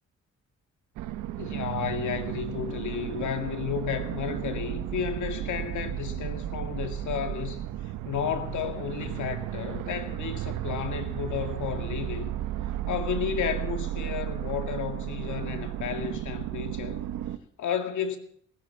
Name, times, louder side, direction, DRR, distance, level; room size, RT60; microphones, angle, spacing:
sound 1, 1.0-17.4, right 12 dB, 85° right, 1.0 m, -34 dB
voice 1, 1.4-12.4 12.9-17.0 17.6-18.2, left 8 dB, 75° left, 2.2 m, -32 dB
17.0 x 9.6 x 7.5 m
cardioid pair, 90°, 30 cm